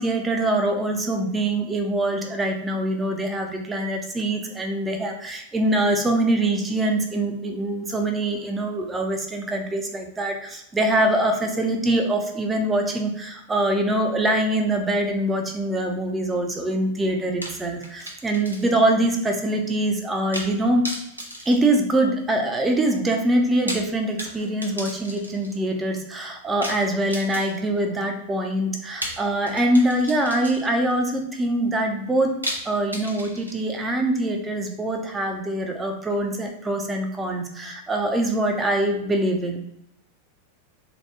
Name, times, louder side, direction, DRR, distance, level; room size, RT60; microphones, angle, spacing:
voice 1, 0.0-20.9 21.5-32.3 32.6-39.6, right 1 dB, 15° right, 3 dB, 0.6 m, -24 dB
sound 1, 17.4-18.9 19.2-19.3 20.3-20.6 20.8-22.4 23.4-25.6 26.6-27.8 29.0-30.9 32.4-33.8, equal, 85° right, 0.6 m, -35 dB
2.9 x 2.3 x 3.4 m, 0.75 s
figure-of-eight pair, 90°, 0 cm